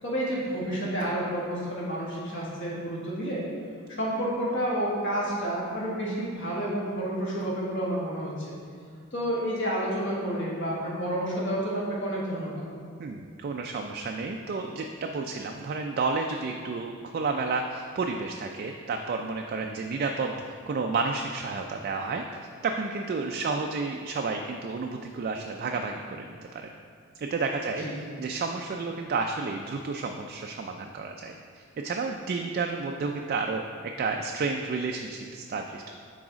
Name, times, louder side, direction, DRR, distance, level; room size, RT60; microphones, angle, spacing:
voice 1, 0.0-3.4 3.9-8.5 9.1-12.6 27.8-28.0, right 1 dB, 55° left, -6 dB, 1.6 m, -30 dB
voice 2, 13.0-20.3 20.7-26.7 27.2-33.6 34.0-35.9, right 4 dB, 45° right, 2 dB, 0.3 m, -31 dB
6.1 x 4.1 x 5.0 m, 2.2 s
head